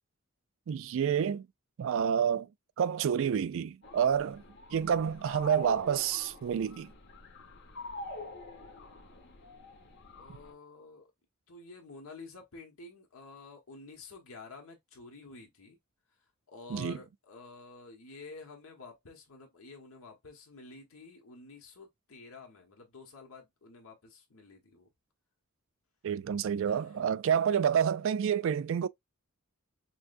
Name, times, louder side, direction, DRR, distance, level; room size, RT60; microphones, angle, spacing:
voice 1, 0.7-1.5 1.8-2.5 2.8-4.4 4.7-6.9 16.7-17.0 26.0-28.9, right 8 dB, 65° right, 0.3 m, -28 dB
sound 1, 3.8-10.5, left 2 dB, 55° left, 1.2 m, -46 dB
voice 2, 10.2-11.1 11.5-15.8 16.5-24.9 26.7-27.1, left 3 dB, 75° left, 1.3 m, -50 dB
5.9 x 2.3 x 2.5 m
head